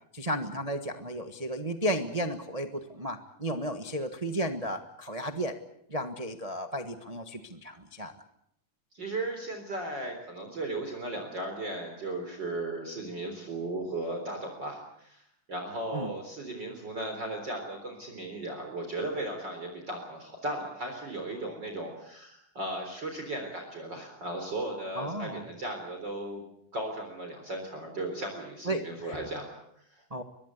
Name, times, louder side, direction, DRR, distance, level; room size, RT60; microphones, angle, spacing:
voice 1, 0.1-5.5 5.9-8.1 15.9-16.1 24.9-25.4 28.7-28.8 29.1-29.2 30.1-30.2, right 1 dB, 85° right, 7 dB, 0.3 m, -33 dB
voice 2, 8.9-15.2 15.5-26.4 26.7-30.2, right 2 dB, 35° right, 3 dB, 4.3 m, -36 dB
23.0 x 22.5 x 8.3 m, 0.74 s
omnidirectional pair, 3.6 m